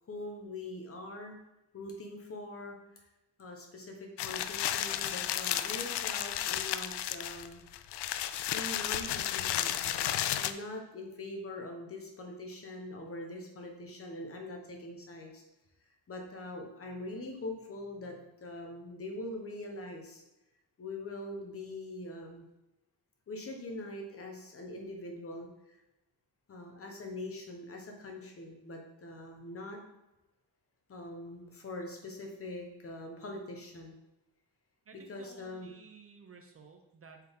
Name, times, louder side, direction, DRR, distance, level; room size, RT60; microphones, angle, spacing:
voice 1, 0.1-1.3 1.7-3.0 3.4-7.7 8.5-9.8 10.3-15.4 16.1-20.2 20.8-22.4 23.3-25.8 26.5-29.8 30.9-34.0 34.9-35.7, left 2 dB, 35° left, 2 dB, 1.1 m, -43 dB
sound 1, 4.2-10.5, left 11 dB, 80° left, 0.5 m, -33 dB
voice 2, 34.9-37.2, right 5 dB, 35° right, 4 dB, 0.6 m, -55 dB
7.4 x 4.6 x 3.7 m, 0.96 s
wide cardioid pair, 175°, 40 cm